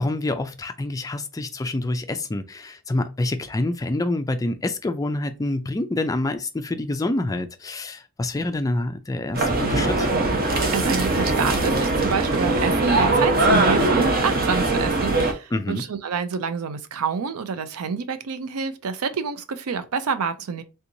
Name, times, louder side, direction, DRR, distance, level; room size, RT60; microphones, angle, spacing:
voice 1, 0.0-10.1 15.5-15.8, left 2 dB, 15° left, 0.3 m, -27 dB
sound 1, 9.3-15.3, right 2 dB, 45° right, 0.8 m, -21 dB
voice 2, 10.7-20.6, right 5 dB, 75° right, 0.5 m, -27 dB
3.4 x 2.9 x 2.6 m
head